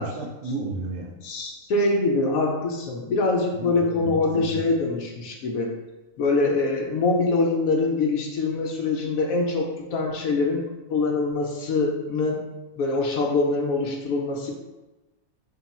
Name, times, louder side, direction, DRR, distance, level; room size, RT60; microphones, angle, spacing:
voice 1, 0.0-1.1 3.6-4.6, right 2 dB, 75° right, 2 dB, 1.0 m, -33 dB
voice 2, 1.2-5.7 6.2-10.6 10.9-12.4 12.8-14.5, left 3 dB, 70° left, 0 dB, 0.9 m, -24 dB
3.6 x 2.3 x 4.1 m, 1.1 s
omnidirectional pair, 1.7 m